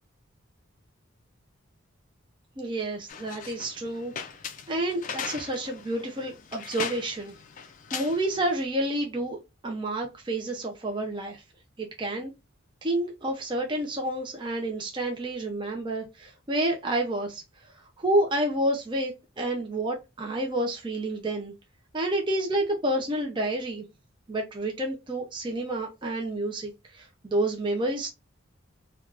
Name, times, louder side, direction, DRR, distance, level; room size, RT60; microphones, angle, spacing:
voice 1, 2.6-4.1 4.7-7.3 7.9-9.4 9.6-11.4 11.8-12.3 12.8-17.4 18.0-21.5 21.9-23.8 24.3-28.1, right 1 dB, 25° right, 2 dB, 0.4 m, -29 dB
sound 1, 3.1-8.6, left 7 dB, 40° left, 0.3 m, -39 dB
3.2 x 2.3 x 2.4 m, 0.24 s
head